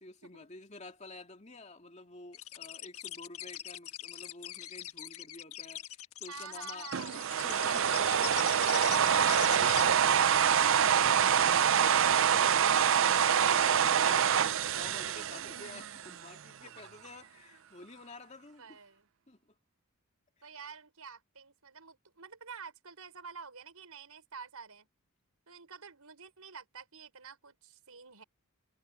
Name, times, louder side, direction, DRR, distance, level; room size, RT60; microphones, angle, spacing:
voice 1, 0.0-10.3 11.3-11.5 12.3-12.4 12.8-14.4 14.7-18.8 19.3-19.6 20.4-20.5, left 3 dB, 30° left, 2.6 m, -50 dB
sound 1, 2.3-9.8, left 12 dB, 80° left, 1.5 m, -42 dB
voice 2, 6.3-7.2 10.2-12.5 15.0-15.8 16.6-16.7 17.0-17.1 18.6-19.1 20.4-24.9 25.5-28.2, right 5 dB, 85° right, 5.5 m, -48 dB
sound 2, 6.9-16.1, right 8 dB, 60° right, 0.5 m, -26 dB
head